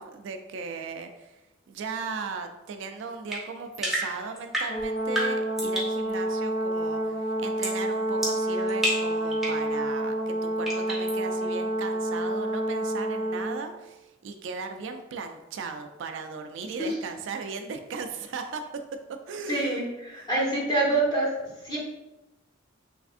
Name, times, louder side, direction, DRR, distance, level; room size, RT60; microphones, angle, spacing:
voice 1, 0.0-1.4 1.7-18.7 18.9-19.0 19.3-19.9 20.1-20.3, right 4 dB, 65° right, 6 dB, 0.3 m, -37 dB
sound 1, 3.3-6.0 7.6-7.8 8.2-9.7 10.6-11.2, equal, ahead, 0.7 m, -31 dB
Brass instrument, 4.7-13.6, right 1 dB, 70° left, 0.6 m, -28 dB
voice 2, 19.5-21.3 21.6-21.8, right 2 dB, 20° left, -5 dB, 1.0 m, -26 dB
3.4 x 3.3 x 2.4 m, 0.99 s
head